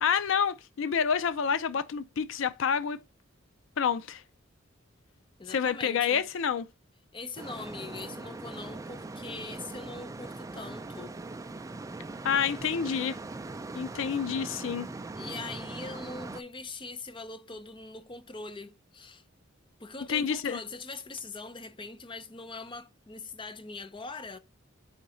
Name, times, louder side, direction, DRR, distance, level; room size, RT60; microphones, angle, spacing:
voice 1, 0.0-3.0 3.8-4.2 5.5-6.7 12.2-13.1 13.7-14.9 20.1-20.6, left 7 dB, 65° left, 0.4 m, -28 dB
voice 2, 5.4-6.2 7.1-11.1 15.2-19.2 19.8-24.4, left 3 dB, 25° left, 0.7 m, -42 dB
sound 1, 7.4-16.4, right 3 dB, 15° right, 0.3 m, -41 dB
5.0 x 4.6 x 4.2 m
head